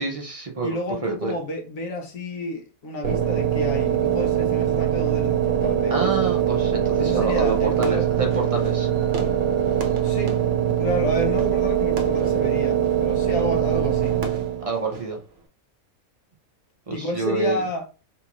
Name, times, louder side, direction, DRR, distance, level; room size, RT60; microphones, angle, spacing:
voice 1, 0.0-0.7 1.0-1.4 5.9-8.9 14.6-15.2 16.9-17.6, right 3 dB, 35° right, 0.5 m, -27 dB
voice 2, 0.6-6.4 7.0-8.1 8.4-8.5 10.0-10.4 10.8-14.2 16.9-17.9, left 1 dB, 70° left, 1.2 m, -30 dB
sound 1, 3.0-14.7, right 10 dB, 85° right, 1.1 m, -22 dB
Fireworks, 7.4-15.5, right 2 dB, 65° right, 1.0 m, -40 dB
3.8 x 2.5 x 2.9 m
omnidirectional pair, 1.5 m